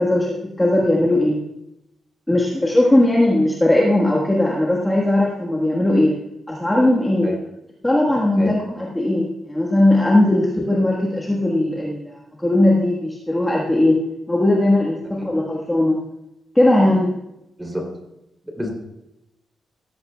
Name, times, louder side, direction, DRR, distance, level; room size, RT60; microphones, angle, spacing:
voice 1, 0.0-1.4 2.3-6.1 6.5-7.3 7.8-14.0 14.3-16.0 16.5-17.1, left 1 dB, 10° left, -3 dB, 1.5 m, -18 dB
voice 2, 17.6-17.9 18.4-18.7, equal, 10° right, 1 dB, 3.0 m, -28 dB
16.5 x 14.5 x 2.3 m, 0.87 s
wide cardioid pair, 160°, 0 cm